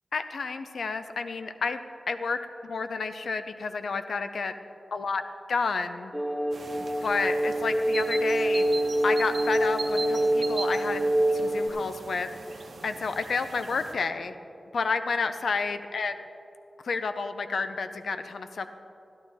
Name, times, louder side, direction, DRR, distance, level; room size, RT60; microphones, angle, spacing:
voice 1, 0.1-1.8 2.1-4.5 4.9-5.2 5.5-6.1 6.8-11.0 11.3-12.3 12.8-14.3 14.7-16.3 16.8-18.7, left 4 dB, 85° left, 9 dB, 0.5 m, -30 dB
sound 1, 6.1-11.7, right 1 dB, 15° left, 1.0 m, -26 dB
sound 2, 6.5-13.9, right 4 dB, 80° right, 0.8 m, -41 dB
11.5 x 11.5 x 4.1 m, 2.9 s
wide cardioid pair, 70°, 0 cm